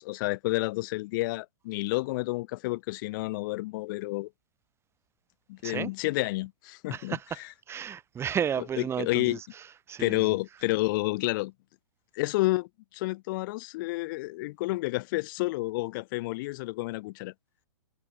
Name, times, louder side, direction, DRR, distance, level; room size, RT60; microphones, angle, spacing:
voice 1, 0.0-4.3 5.5-7.5 8.6-9.4 10.0-11.5 12.1-17.3, left 21 dB, 45° left, 3.5 m, -30 dB
voice 2, 6.9-9.4 9.9-10.2, right 8 dB, 15° right, 3.1 m, -33 dB
hypercardioid pair, 130°, 15 cm